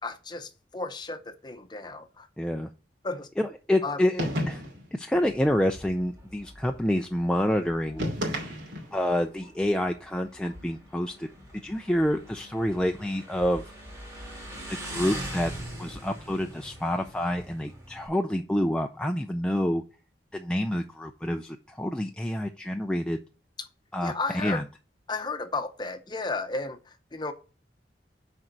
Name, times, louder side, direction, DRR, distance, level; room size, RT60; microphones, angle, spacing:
voice 1, 0.0-2.3 3.0-3.3 3.8-4.0 24.0-24.6 25.1-27.3, left 3 dB, 25° left, 0.7 m, -33 dB
voice 2, 2.4-2.7 3.4-4.6 4.9-8.1 8.9-11.3 11.6-13.6 14.8-15.5 15.8-19.8 20.3-23.2 23.9-24.6, left 1 dB, 5° left, 0.4 m, -28 dB
sound 1, 4.2-4.9 8.0-9.0, equal, 85° right, 2.6 m, -31 dB
Motorcycle, 5.1-18.1, equal, 15° right, 2.0 m, -42 dB
6.3 x 4.4 x 5.9 m
head